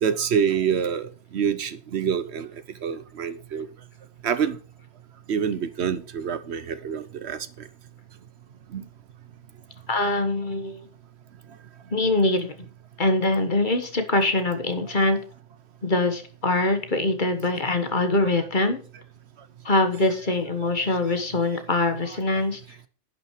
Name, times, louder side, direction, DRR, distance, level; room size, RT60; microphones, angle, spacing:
voice 1, 0.0-2.5 2.8-3.7 4.2-4.6 5.3-7.7 8.7-8.8 17.7-17.8, right 7 dB, 65° right, 14 dB, 1.0 m, -26 dB
voice 2, 9.9-10.8 11.9-12.6 13.0-15.2 15.8-18.8 19.6-22.8, left 2 dB, 45° left, 8 dB, 1.5 m, -23 dB
10.5 x 6.2 x 4.5 m, 0.40 s
omnidirectional pair, 1.2 m